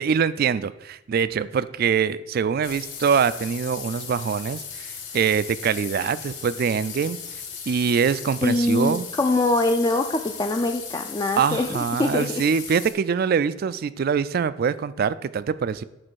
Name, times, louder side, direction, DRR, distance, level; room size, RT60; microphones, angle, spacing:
voice 1, 0.0-7.2 7.7-9.1 11.4-15.8, right 6 dB, 50° right, 16 dB, 0.3 m, -24 dB
sound 1, 2.6-12.9, left 7 dB, 70° left, 1.6 m, -37 dB
voice 2, 8.4-12.3, left 2 dB, 20° left, 5 dB, 0.4 m, -23 dB
7.6 x 4.0 x 6.2 m, 0.91 s
head